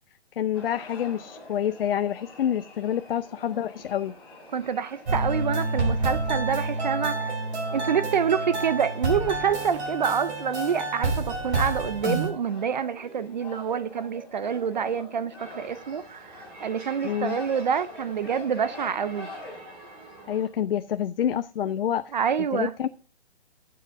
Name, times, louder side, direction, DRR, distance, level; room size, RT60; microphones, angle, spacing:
voice 1, 0.3-4.1 17.0-17.4 20.3-22.1 22.5-22.9, left 10 dB, 60° left, 0.5 m, -27 dB
sound 1, 0.5-20.1, left 2 dB, 5° left, 2.9 m, -46 dB
voice 2, 4.5-7.3 7.7-19.3 22.1-22.7, right 7 dB, 45° right, 0.5 m, -27 dB
sound 2, 5.1-12.3, right 2 dB, 75° right, 3.9 m, -28 dB
sound 3, 15.4-20.5, right 2 dB, 20° right, 2.4 m, -47 dB
17.0 x 7.6 x 2.6 m
hypercardioid pair, 170°, 33 cm